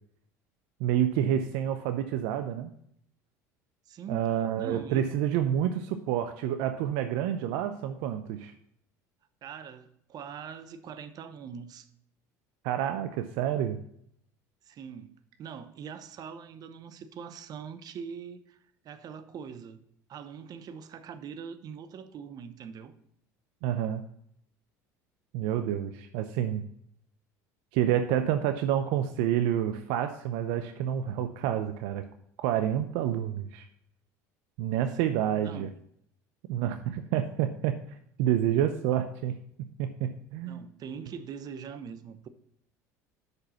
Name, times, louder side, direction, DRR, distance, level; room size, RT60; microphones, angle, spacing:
voice 1, 0.8-2.7 4.1-8.5 12.6-13.8 23.6-24.0 25.3-26.6 27.7-32.1 32.4-33.7 34.6-35.7 36.5-37.8 38.2-39.3 39.8-40.6, right 10 dB, 70° right, 0.6 m, -28 dB
voice 2, 3.9-4.3 4.6-5.0 9.4-11.9 14.6-19.8 20.1-22.9 35.0-35.7 40.5-42.3, right 7 dB, 45° right, 0.8 m, -42 dB
6.2 x 5.4 x 7.0 m
hypercardioid pair, 80°, 9 cm